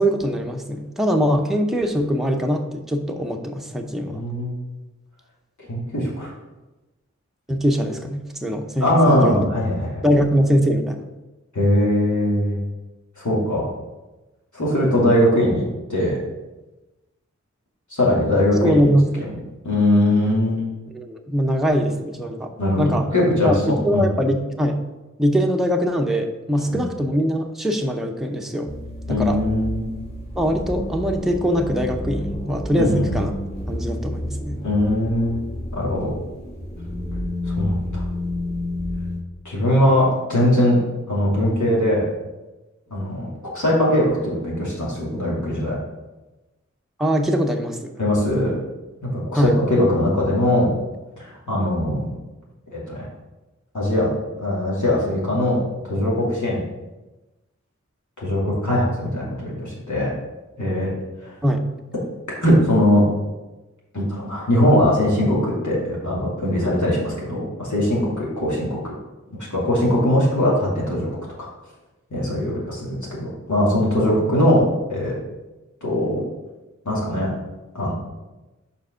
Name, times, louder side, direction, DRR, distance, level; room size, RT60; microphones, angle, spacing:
voice 1, 0.0-4.2 7.5-9.5 10.0-11.0 18.6-19.3 20.9-22.5 22.8-23.1 23.4-24.8 25.2-28.7 29.1-29.4 30.4-33.3 33.7-34.6 47.0-47.9 49.3-49.5 61.4-61.6, equal, ahead, 3 dB, 0.7 m, -22 dB
voice 2, 4.0-4.6 5.7-6.3 8.8-10.0 11.5-12.6 13.2-13.7 14.5-16.2 17.9-18.9 19.2-19.3 19.6-20.6 22.6-24.1 26.7-26.9 29.1-29.8 32.8-33.2 34.6-35.4 35.7-36.1 37.5-38.0 39.4-40.8 41.1-42.1 42.9-45.8 48.0-48.6 49.0-50.7 51.2-52.1 52.7-53.1 53.7-54.1 54.4-56.6 58.2-60.1 60.6-60.9 61.2-61.3 62.3-63.0 63.9-68.9 69.5-71.1 71.4-71.5 72.1-73.1 73.5-74.6 74.9-75.1 75.8-76.2 76.8-77.3 77.7-77.9, left 1 dB, 85° left, -6 dB, 2.5 m, -20 dB
sound 1, 28.7-39.2, left 1 dB, 35° left, 2.6 m, -30 dB
5.3 x 4.7 x 6.3 m, 1.1 s
wide cardioid pair, 45°, 29 cm